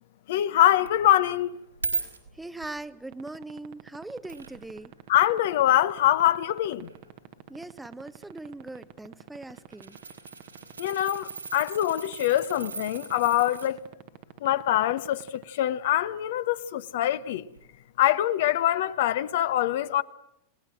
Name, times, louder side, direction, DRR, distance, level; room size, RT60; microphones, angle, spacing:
voice 1, 0.3-1.6 5.1-6.9 10.8-13.8 14.4-17.5 18.0-20.0, left 13 dB, 55° left, 1.0 m, -24 dB
sound 1, 0.8-0.9 1.4-2.8 3.5-3.6 4.3-4.8 5.1-5.2 6.0-7.1 8.2-8.5 8.8-8.9 9.4-13.7 17.6-17.7, right 4 dB, 85° right, 4.4 m, -37 dB
voice 2, 2.3-4.9 7.5-10.0, right 2 dB, 5° right, 0.9 m, -40 dB
sound 2, 3.1-15.4, right 18 dB, 50° right, 1.3 m, -44 dB
28.5 x 19.0 x 7.7 m
figure-of-eight pair, 90°, 0 cm